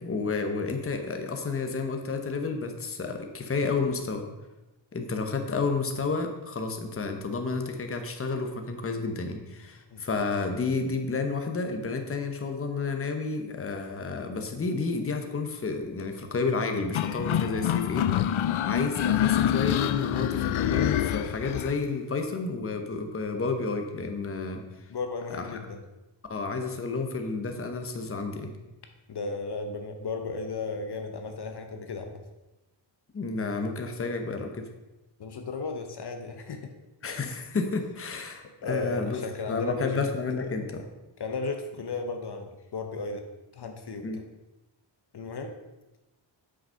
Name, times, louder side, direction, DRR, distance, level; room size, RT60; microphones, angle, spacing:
voice 1, 0.0-4.2 4.9-24.9 25.3-25.6 26.3-28.5 33.1-34.7 37.0-40.8 44.0-44.2, left 4 dB, 30° left, 5 dB, 0.9 m, -31 dB
sound 1, 16.9-21.8, left 11 dB, 85° left, 0.6 m, -26 dB
voice 2, 24.9-25.8 29.1-32.2 35.2-36.7 38.4-40.0 40.4-40.5 41.2-43.2 43.5-44.2 45.1-45.5, left 3 dB, 55° left, 5 dB, 0.9 m, -35 dB
7.9 x 6.3 x 5.6 m, 1.0 s
wide cardioid pair, 165°, 47 cm